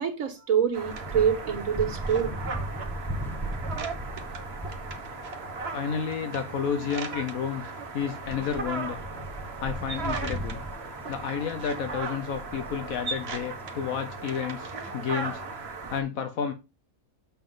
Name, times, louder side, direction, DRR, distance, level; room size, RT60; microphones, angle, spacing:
voice 1, 0.0-2.4, right 8 dB, 65° right, 1.7 m, -26 dB
sound 1, 0.7-16.0, right 4 dB, 50° right, 1.3 m, -37 dB
sound 2, 0.8-16.0, right 1 dB, ahead, 0.7 m, -39 dB
voice 2, 5.7-7.6 7.9-9.0 9.6-10.6 11.1-15.4 15.9-16.5, left 7 dB, 75° left, 1.3 m, -31 dB
7.2 x 5.6 x 3.7 m
omnidirectional pair, 1.5 m